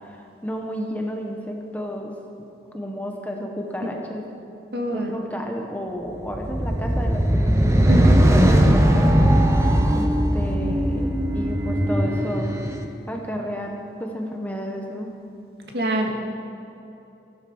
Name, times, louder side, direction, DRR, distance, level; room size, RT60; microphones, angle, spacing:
voice 1, 0.0-2.1 2.7-4.3 4.9-9.3 9.9-12.6 13.1-15.1, equal, 10° left, 1 dB, 1.2 m, -31 dB
voice 2, 4.7-5.1 7.9-8.3 15.7-16.1, right 1 dB, 65° right, 1 dB, 2.0 m, -24 dB
sound 1, 6.3-12.8, equal, 15° right, 0.9 m, -19 dB
15.5 x 12.5 x 5.5 m, 2.8 s
head